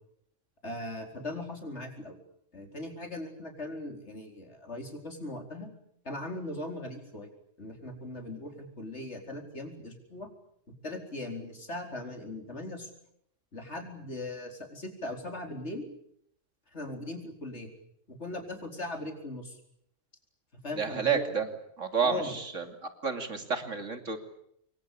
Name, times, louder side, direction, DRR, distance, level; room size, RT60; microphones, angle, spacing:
voice 1, 0.6-2.2 2.5-5.7 6.0-7.3 7.6-10.3 10.8-12.9 13.5-15.8 16.7-17.7 18.1-19.6 20.6-21.3 22.0-22.3, left 1 dB, 60° left, 4 dB, 4.9 m, -39 dB
voice 2, 20.8-21.5 21.8-22.7 23.0-24.2, right 6 dB, 75° right, 7 dB, 3.1 m, -30 dB
26.5 x 23.0 x 8.6 m, 0.73 s
omnidirectional pair, 1.3 m